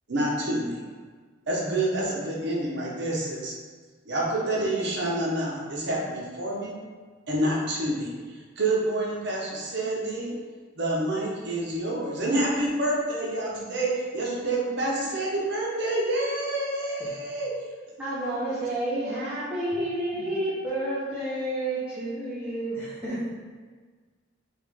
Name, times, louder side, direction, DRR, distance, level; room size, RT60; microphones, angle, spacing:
voice 1, 0.1-0.7 1.5-3.5 4.0-6.8 7.3-10.3 10.8-17.5 20.1-20.2, right 1 dB, 60° right, -4 dB, 0.9 m, -28 dB
voice 2, 18.0-22.8, right 1 dB, 5° right, -12 dB, 0.7 m, -30 dB
voice 3, 22.7-23.3, equal, 10° left, -10 dB, 1.3 m, -34 dB
3.6 x 3.5 x 3.5 m, 1.5 s
head